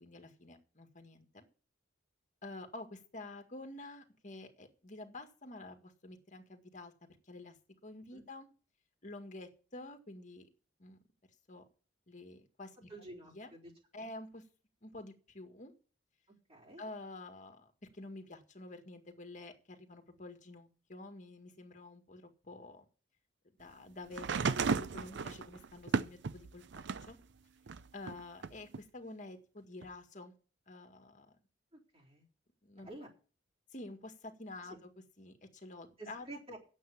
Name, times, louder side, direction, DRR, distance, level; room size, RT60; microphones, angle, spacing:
voice 1, 0.0-1.5 2.4-6.9 7.3-7.5 7.8-8.5 9.0-10.5 10.8-11.0 11.5-11.6 12.1-13.5 13.9-14.4 14.8-15.7 16.8-22.9 23.6-27.2 27.9-30.3 30.7-31.3 32.6-32.9 33.7-34.9 35.2-36.3, left 2 dB, 40° left, 6 dB, 1.9 m, -49 dB
voice 2, 12.9-13.7 14.0-14.1 16.5-16.8 31.7-32.2 32.9-33.1 34.6-34.8 36.0-36.6, right 2 dB, 35° right, -2 dB, 3.7 m, -50 dB
sound 1, 24.1-27.2 27.7-28.8 29.8-29.9, right 5 dB, 65° right, 0.5 m, -35 dB
9.3 x 7.6 x 8.4 m, 0.38 s
head